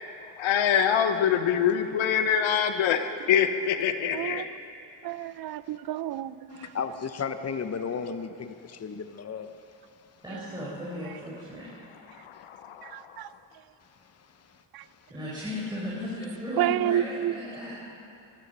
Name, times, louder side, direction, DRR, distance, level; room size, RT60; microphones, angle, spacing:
voice 1, 0.4-4.4 12.2-13.0, left 8 dB, 85° left, 8 dB, 1.0 m, -25 dB
voice 2, 4.1-4.5 5.0-6.7 10.3-10.5 12.8-13.3 14.7-14.8 16.6-17.4, right 12 dB, 50° right, 16 dB, 0.5 m, -30 dB
voice 3, 6.5-9.6, left 6 dB, 35° left, 9 dB, 0.9 m, -34 dB
voice 4, 10.2-11.7 15.1-17.8, left 1 dB, 10° right, -7 dB, 4.4 m, -35 dB
20.0 x 12.5 x 5.5 m, 2.6 s
cardioid pair, 75°, 46 cm